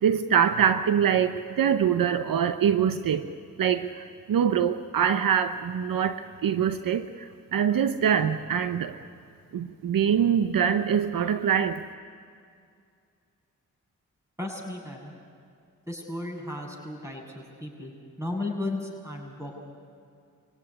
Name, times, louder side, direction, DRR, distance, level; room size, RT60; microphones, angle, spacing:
voice 1, 0.0-3.3 3.6-9.0 9.5-11.9, right 8 dB, 75° right, 10 dB, 0.9 m, -24 dB
voice 2, 14.4-15.1 15.9-17.9 18.2-19.6, left 2 dB, 10° right, 1 dB, 7.3 m, -35 dB
24.0 x 17.0 x 9.7 m, 2.3 s
supercardioid pair, 40°, 34 cm